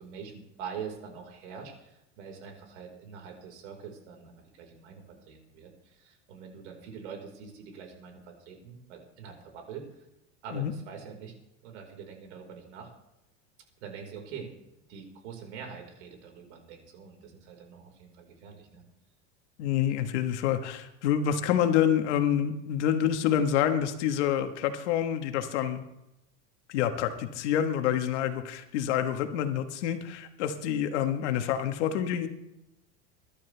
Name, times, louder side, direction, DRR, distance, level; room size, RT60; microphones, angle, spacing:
voice 1, 0.0-9.8 10.4-11.3 11.6-12.9 13.8-14.5 14.9-18.8, right 6 dB, 85° right, 2 dB, 4.8 m, -44 dB
voice 2, 19.6-25.8 26.7-32.3, left 9 dB, 80° left, 7 dB, 1.6 m, -27 dB
22.5 x 12.0 x 3.5 m, 0.89 s
supercardioid pair, 170°, 34 cm